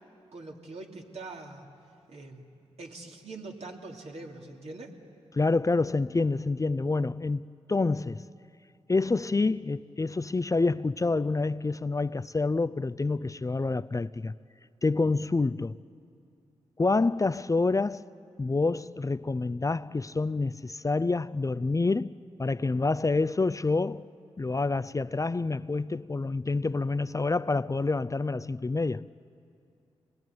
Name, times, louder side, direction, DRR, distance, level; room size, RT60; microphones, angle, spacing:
voice 1, 0.3-1.7 2.1-2.5 2.8-5.0, right 3 dB, 65° right, 3.1 m, -43 dB
voice 2, 5.3-8.2 8.9-14.3 14.8-15.8 16.8-18.0 18.4-24.0 24.4-29.0, left 3 dB, 30° left, 0.5 m, -27 dB
26.0 x 20.5 x 9.5 m
supercardioid pair, 45°, 12 cm